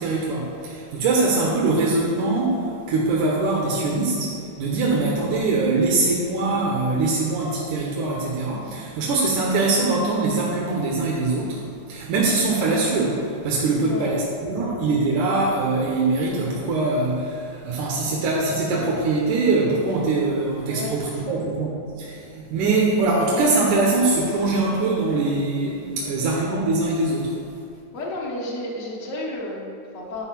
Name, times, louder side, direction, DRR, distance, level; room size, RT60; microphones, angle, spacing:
voice 1, 0.0-11.6 11.9-27.3, right 3 dB, 90° right, -3 dB, 2.5 m, -22 dB
voice 2, 13.8-14.2 20.7-21.4 27.9-30.2, left 1 dB, 75° left, -4 dB, 0.7 m, -32 dB
11.0 x 4.5 x 5.9 m, 2.5 s
omnidirectional pair, 3.4 m